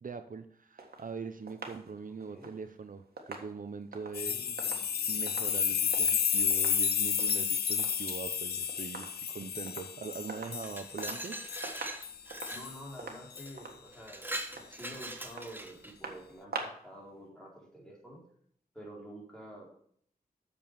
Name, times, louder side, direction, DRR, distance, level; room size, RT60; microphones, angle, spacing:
voice 1, 0.0-4.4 5.1-11.4, right 5 dB, 60° right, 9 dB, 0.6 m, -42 dB
sound 1, 0.8-6.2 6.5-6.8 7.1-8.3 8.5-9.4 9.7-9.9 10.3-11.3 11.6-16.9 17.2-17.3, right 3 dB, 85° right, 1.6 m, -46 dB
sound 2, 4.1-12.8 13.4-13.5 14.3-14.4, left 7 dB, 85° left, 0.5 m, -32 dB
voice 2, 4.2-5.3 12.5-18.2 18.7-19.7, equal, 5° left, -4 dB, 4.1 m, -49 dB
Glass, 10.4-12.7 13.4-13.5 13.9-16.0, right 1 dB, 15° right, 1.1 m, -41 dB
8.3 x 6.9 x 5.4 m, 0.64 s
wide cardioid pair, 85°, 16 cm